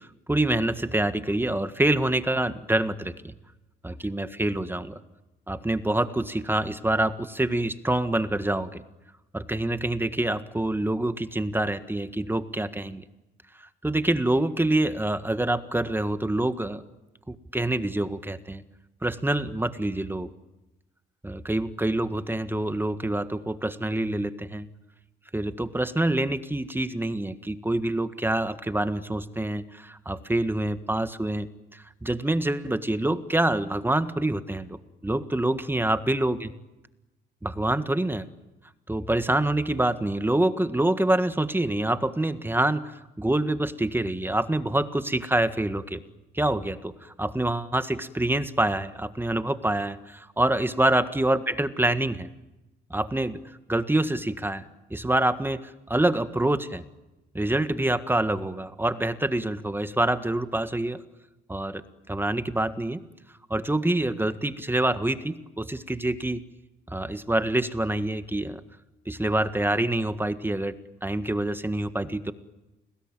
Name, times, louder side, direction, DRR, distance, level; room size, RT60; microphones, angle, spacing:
voice 1, 0.3-3.3 3.8-5.0 5.5-8.8 9.3-13.0 13.8-16.8 17.3-18.6 19.0-20.3 21.2-24.7 25.3-34.8 35.0-36.5 37.4-38.2 38.9-46.0 46.3-52.3 52.9-53.4 53.7-54.6 54.9-56.8 57.3-61.0 61.5-63.0 63.5-66.4 66.9-68.6 69.0-72.3, right 1 dB, 10° right, 11 dB, 1.6 m, -26 dB
29.5 x 20.5 x 9.0 m, 1.0 s
cardioid pair, 90°, 20 cm